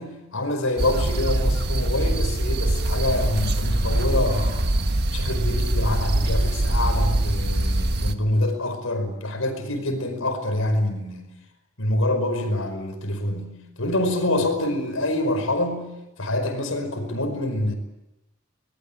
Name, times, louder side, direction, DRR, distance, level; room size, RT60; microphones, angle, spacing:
voice 1, 0.0-4.8 5.1-11.3 11.8-15.8 16.2-17.8, left 1 dB, 85° left, 6 dB, 5.2 m, -26 dB
sound 1, 0.8-8.1, right 1 dB, 50° right, 1.5 m, -23 dB
24.5 x 20.5 x 8.6 m, 0.94 s
head